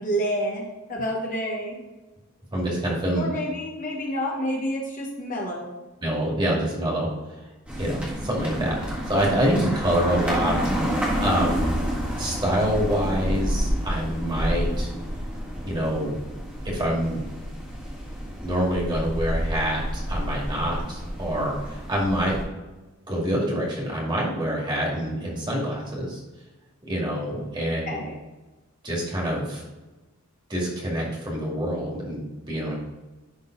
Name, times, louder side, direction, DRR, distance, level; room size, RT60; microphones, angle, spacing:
voice 1, 0.0-1.8 3.1-5.7 27.8-28.2, equal, 35° left, -1 dB, 1.2 m, -29 dB
voice 2, 2.5-3.3 6.0-7.1 7.8-10.6 11.2-11.7 12.2-14.9 15.6-16.2 16.6-17.2 18.4-22.3 23.1-26.2 26.8-28.0 28.8-29.6 30.5-32.8, equal, 20° right, -3 dB, 2.2 m, -26 dB
sound 1, 7.7-22.4, equal, 5° right, 1.7 m, -29 dB
11.0 x 3.8 x 3.9 m, 1.1 s
head